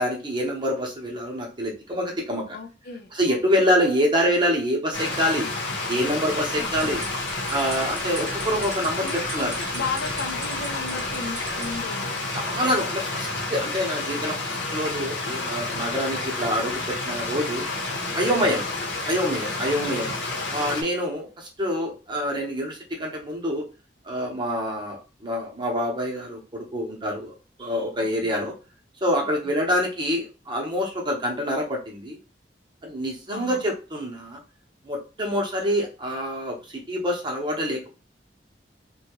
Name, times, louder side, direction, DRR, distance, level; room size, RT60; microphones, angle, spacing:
voice 1, 0.0-2.6 3.1-5.5 5.9-7.0 7.5-9.5 12.3-17.6 18.1-18.6 19.0-20.1 20.5-23.6 24.0-27.3 27.6-28.5 29.0-32.2 32.8-34.4 34.8-36.6 36.9-38.0, equal, 25° right, -1 dB, 0.9 m, -26 dB
voice 2, 2.5-3.7 6.6-7.0 9.0-12.1 12.5-12.7 19.5-20.0 28.0-28.4 29.2-29.5 33.3-33.6, left 4 dB, 60° left, 5 dB, 0.5 m, -36 dB
Stream, 4.9-20.8, left 2 dB, 85° left, 0.8 m, -30 dB
sound 1, 6.7-11.8, right 4 dB, 65° right, 0.8 m, -40 dB
2.8 x 2.3 x 2.9 m, 0.32 s
head